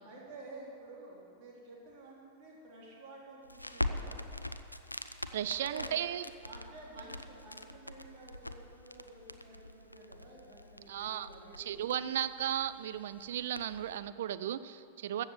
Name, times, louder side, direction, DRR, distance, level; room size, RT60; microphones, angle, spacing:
voice 1, 0.0-4.2 5.5-6.0 6.4-11.9, right 2 dB, 40° right, -4 dB, 3.8 m, -51 dB
Crackle, 3.4-14.0, left 1 dB, 85° left, 0.5 m, -43 dB
voice 2, 5.3-6.3 10.9-11.3 11.6-15.2, right 11 dB, 60° right, 14 dB, 0.4 m, -35 dB
14.5 x 7.2 x 7.9 m, 2.5 s
figure-of-eight pair, 90°, 0 cm